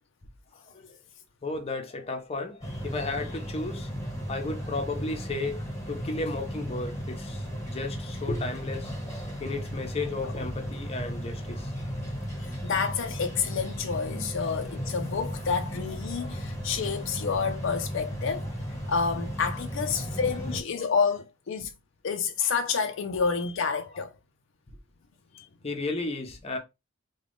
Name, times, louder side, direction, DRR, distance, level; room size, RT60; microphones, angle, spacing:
voice 1, 1.4-3.9 4.3-8.9 9.4-11.7 14.4-14.9 19.9-20.2 25.6-26.6, left 3 dB, 30° left, 0.7 m, -34 dB
sound 1, 2.6-20.6, equal, 15° left, 1.2 m, -35 dB
voice 2, 12.4-18.5 18.9-21.7 22.0-24.1 25.3-25.5, left 5 dB, 65° left, 0.4 m, -29 dB
3.6 x 2.3 x 3.3 m
head